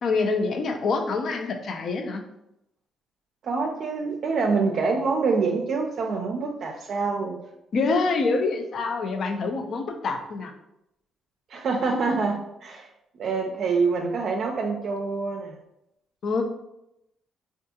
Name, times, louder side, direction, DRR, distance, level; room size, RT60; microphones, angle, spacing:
voice 1, 0.0-2.2 7.7-10.5 16.2-16.4, left 4 dB, 60° left, 5 dB, 0.5 m, -26 dB
voice 2, 3.4-7.4 11.5-12.9 13.2-15.6, right 4 dB, 60° right, 1 dB, 0.4 m, -26 dB
3.5 x 2.4 x 2.7 m, 0.84 s
cardioid pair, 90°, 0 cm